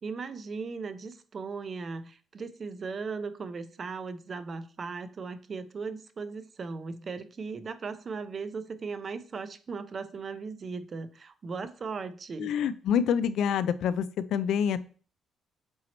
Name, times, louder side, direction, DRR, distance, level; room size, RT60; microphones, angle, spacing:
voice 1, 0.0-12.5, right 4 dB, 45° right, 12 dB, 0.6 m, -37 dB
voice 2, 12.4-14.8, left 8 dB, 80° left, 15 dB, 0.4 m, -27 dB
7.7 x 2.9 x 4.2 m, 0.41 s
cardioid pair, 90°, 0 cm